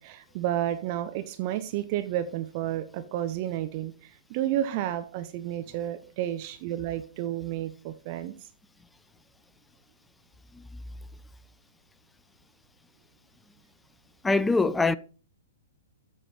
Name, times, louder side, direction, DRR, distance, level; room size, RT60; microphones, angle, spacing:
voice 1, 0.0-8.3, right 12 dB, 40° right, 0.7 m, -31 dB
voice 2, 14.2-15.0, left 3 dB, 5° left, 0.4 m, -23 dB
9.0 x 6.5 x 4.2 m
figure-of-eight pair, 110°, 0 cm